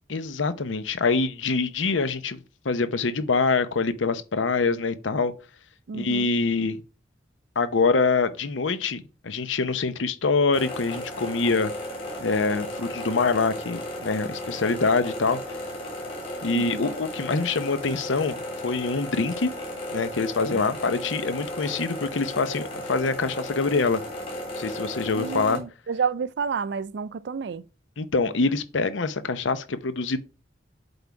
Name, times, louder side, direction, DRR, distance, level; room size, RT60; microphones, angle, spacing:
voice 1, 0.1-2.4 2.6-5.3 5.9-6.8 7.6-11.7 12.2-15.4 16.4-18.4 18.6-19.5 19.9-24.0 24.6-25.6 28.0-30.2, left 4 dB, 85° left, 0.7 m, -25 dB
voice 2, 5.9-6.3 16.5-16.9 20.5-20.6 25.0-27.6, right 6 dB, 60° right, 0.4 m, -30 dB
sound 1, 10.5-25.6, left 1 dB, 30° left, 2.8 m, -35 dB
7.9 x 3.6 x 4.7 m
head